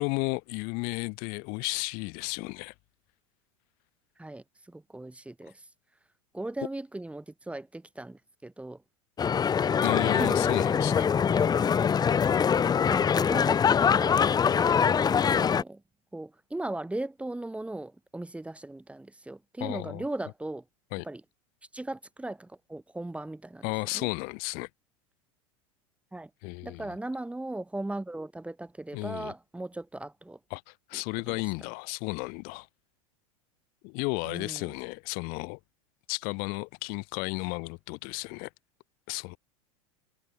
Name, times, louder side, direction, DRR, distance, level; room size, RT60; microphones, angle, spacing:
voice 1, 0.0-2.7 9.8-11.1 19.6-20.0 20.9-21.0 23.6-24.7 26.4-26.9 28.9-29.3 30.5-32.7 33.8-35.6 36.1-38.5 39.1-39.4, left 32 dB, 55° left, 4.6 m, -33 dB
voice 2, 4.2-5.6 6.3-8.8 10.2-11.5 12.9-15.8 16.1-20.6 21.0-21.2 21.7-23.7 23.9-24.1 26.1-26.3 26.6-30.4 31.3-31.4 34.2-34.7, right 2 dB, 5° right, 5.6 m, -38 dB
sound 1, 9.2-15.6, left 7 dB, 20° left, 1.0 m, -23 dB
hypercardioid pair, 90°, 18 cm